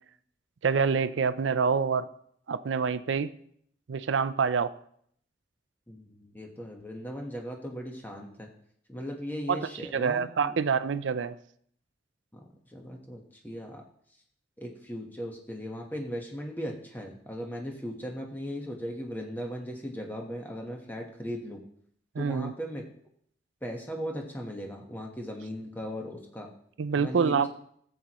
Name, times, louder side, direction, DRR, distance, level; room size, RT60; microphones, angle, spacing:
voice 1, 0.6-2.1 2.5-3.3 3.9-4.7 9.5-11.4 22.2-22.5 26.8-27.5, right 6 dB, 80° right, 14 dB, 0.5 m, -26 dB
voice 2, 5.9-8.5 8.9-10.5 12.3-12.4 12.7-13.8 14.6-21.6 22.2-22.8 23.6-26.5 26.9-27.5, equal, 10° left, 1 dB, 1.2 m, -38 dB
14.0 x 7.8 x 3.0 m, 0.66 s
head